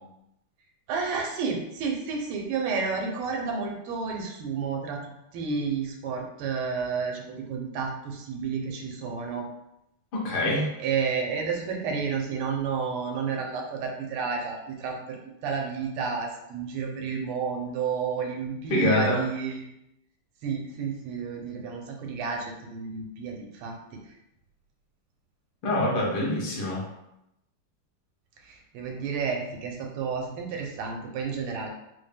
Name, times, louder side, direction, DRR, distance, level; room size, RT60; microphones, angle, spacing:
voice 1, 0.9-5.0 5.3-9.4 10.8-19.7 20.4-23.8 28.5-31.7, right 5 dB, 90° right, 1 dB, 1.6 m, -31 dB
voice 2, 10.1-10.7 18.7-19.2 25.6-26.8, left 1 dB, 80° left, -4 dB, 1.9 m, -25 dB
4.3 x 2.1 x 3.3 m, 0.84 s
omnidirectional pair, 2.4 m